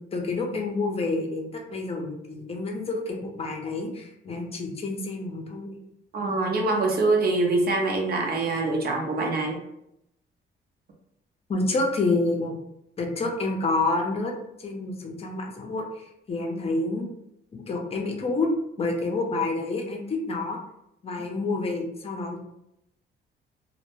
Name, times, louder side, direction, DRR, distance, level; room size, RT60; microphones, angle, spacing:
voice 1, 0.1-5.8 11.5-12.5 13.0-14.3 14.6-17.1 17.5-18.5 18.8-20.6 21.0-22.4, left 3 dB, 30° left, 2 dB, 0.6 m, -28 dB
voice 2, 6.1-9.6, right 2 dB, 50° right, 1 dB, 0.6 m, -24 dB
2.1 x 2.1 x 3.0 m, 0.80 s
cardioid pair, 90°, 20 cm